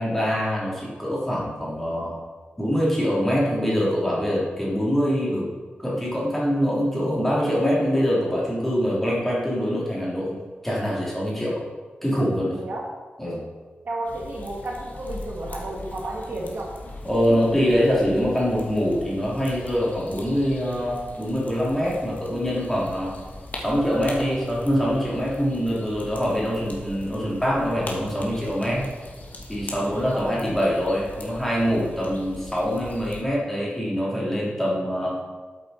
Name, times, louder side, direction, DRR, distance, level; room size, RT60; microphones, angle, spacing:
voice 1, 0.0-2.2 2.6-5.5 5.8-10.4 10.6-11.6 12.0-12.6 13.2-13.4 17.0-23.2 23.6-28.9 29.5-35.2, equal, 5° left, -6 dB, 3.6 m, -24 dB
voice 2, 13.8-16.7 30.1-30.5, right 2 dB, 60° right, -2 dB, 2.3 m, -32 dB
sound 1, 14.0-33.2, left 2 dB, 50° left, 1.7 m, -41 dB
13.0 x 7.8 x 4.4 m, 1.3 s
wide cardioid pair, 160°, 4 cm